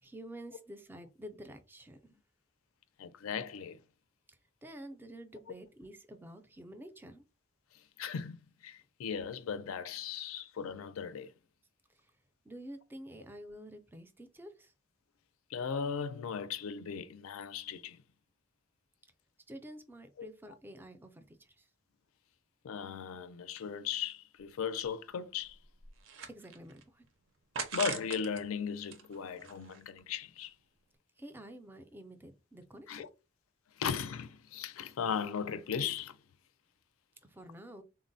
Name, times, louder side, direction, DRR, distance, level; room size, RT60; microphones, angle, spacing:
voice 1, 0.0-2.2 4.3-7.2 11.9-12.1 12.4-14.7 19.5-21.7 26.3-27.1 31.2-33.0 37.2-37.8, right 1 dB, 10° right, 0.3 m, -49 dB
voice 2, 3.0-3.8 7.7-11.3 15.5-18.0 20.2-20.3 22.6-25.6 27.7-30.5 32.9-33.1 33.8-36.2, left 7 dB, 80° left, 0.4 m, -37 dB
sound 1, 24.4-24.5 24.8-24.9 25.5-26.8 27.5-28.4 28.8-30.0, right 5 dB, 65° right, 0.5 m, -41 dB
3.7 x 2.0 x 2.6 m
head